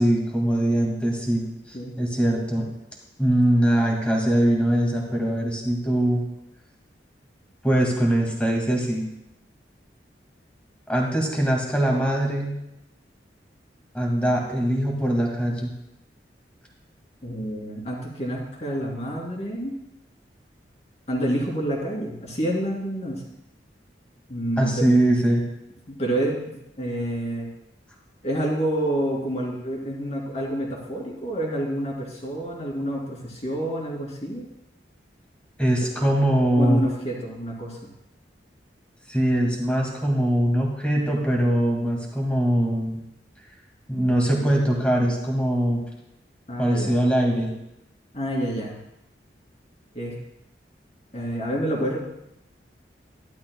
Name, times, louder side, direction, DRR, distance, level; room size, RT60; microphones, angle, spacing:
voice 1, 0.0-2.7 3.2-6.2 7.6-9.0 10.9-12.6 13.9-15.7 24.6-25.4 35.6-36.8 39.1-43.0 43.9-45.8 46.6-47.5, right 1 dB, 5° left, -1 dB, 2.0 m, -22 dB
voice 2, 17.2-19.7 21.1-23.2 24.3-24.8 25.9-27.5 28.2-34.4 36.6-37.9 46.5-47.0 48.1-48.8 49.9-50.1 51.1-52.0, right 1 dB, 40° left, -2 dB, 2.6 m, -28 dB
12.5 x 11.5 x 2.3 m, 0.85 s
head